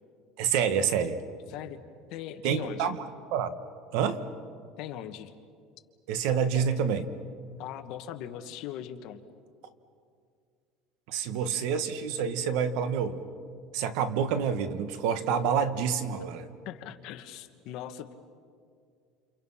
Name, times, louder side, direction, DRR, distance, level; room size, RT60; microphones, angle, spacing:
voice 1, 0.4-1.2 2.4-3.0 3.3-3.6 3.9-4.2 6.1-7.0 11.1-13.2 13.7-16.5, right 7 dB, 65° right, 11 dB, 1.6 m, -27 dB
voice 2, 1.5-1.8 2.1-3.0 4.8-5.3 6.5-6.7 7.6-9.2 16.6-18.1, left 11 dB, 55° left, 7 dB, 1.5 m, -40 dB
29.0 x 29.0 x 5.8 m, 2.2 s
cardioid pair, 160°, 0 cm